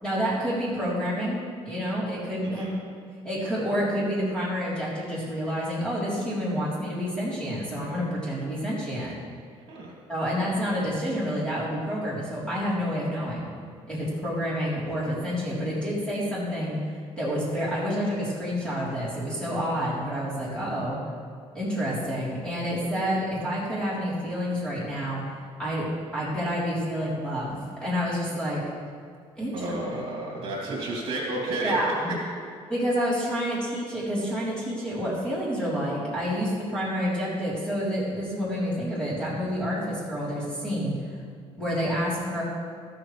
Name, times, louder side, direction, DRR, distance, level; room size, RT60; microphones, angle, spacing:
voice 1, 0.0-2.6 3.2-9.1 10.1-13.6 13.9-16.8 17.2-21.0 21.5-25.3 25.6-28.6 29.4-29.6 31.6-32.1 32.7-41.0 41.6-42.4, equal, 10° left, -9 dB, 3.6 m, -28 dB
voice 2, 2.4-2.7 9.7-9.9 29.5-31.8, right 2 dB, 50° right, -3 dB, 2.9 m, -31 dB
13.5 x 13.0 x 3.3 m, 2.2 s
cardioid pair, 165°, 11 cm